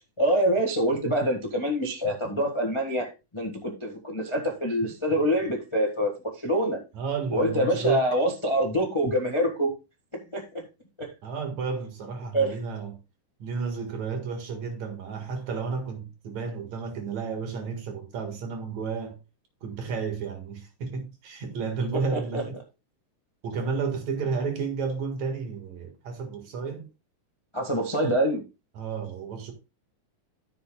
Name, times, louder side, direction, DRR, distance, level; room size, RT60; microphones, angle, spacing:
voice 1, 0.2-6.8 7.3-9.7 10.1-10.6 11.0-11.1 12.3-12.6 22.1-22.4 27.5-28.4, equal, 20° left, 0.6 m, -26 dB
voice 2, 6.9-8.0 11.2-13.0 13.4-19.2 19.6-22.6 23.4-26.9 28.8-29.5, right 5 dB, 65° right, 3.0 m, -32 dB
14.0 x 7.0 x 2.3 m
omnidirectional pair, 3.5 m